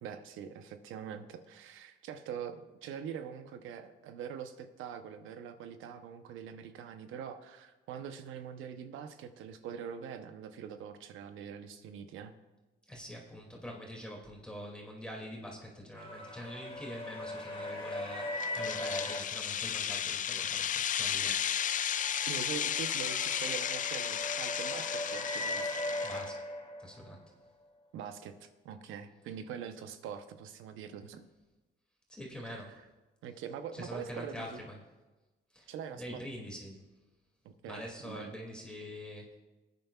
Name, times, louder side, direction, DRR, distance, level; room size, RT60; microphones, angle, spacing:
voice 1, 0.0-12.3 22.3-26.1 27.9-31.3 32.4-32.7 33.2-34.6 35.7-36.3 37.4-38.4, right 8 dB, 90° right, 9 dB, 0.8 m, -44 dB
voice 2, 12.9-21.4 26.0-26.3 26.8-27.2 32.1-32.8 33.7-34.7 35.5-36.8 37.7-39.3, equal, 5° left, -2 dB, 2.4 m, -45 dB
sound 1, 16.0-19.2 21.6-27.1, left 1 dB, 25° left, 2.5 m, -39 dB
sound 2, 18.4-26.3, left 9 dB, 40° left, 0.4 m, -34 dB
19.5 x 9.3 x 2.4 m, 1.1 s
cardioid pair, 90°, 20 cm